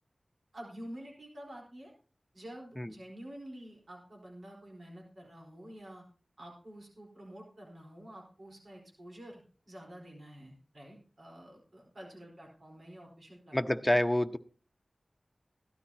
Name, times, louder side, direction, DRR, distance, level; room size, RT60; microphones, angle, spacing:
voice 1, 0.5-1.9 2.3-6.0 6.4-9.4 9.7-14.0, equal, 70° right, -1 dB, 4.3 m, -49 dB
voice 2, 13.5-14.4, left 1 dB, 10° left, 7 dB, 0.8 m, -27 dB
16.0 x 12.5 x 3.0 m, 0.38 s
wide cardioid pair, 65°, 0 cm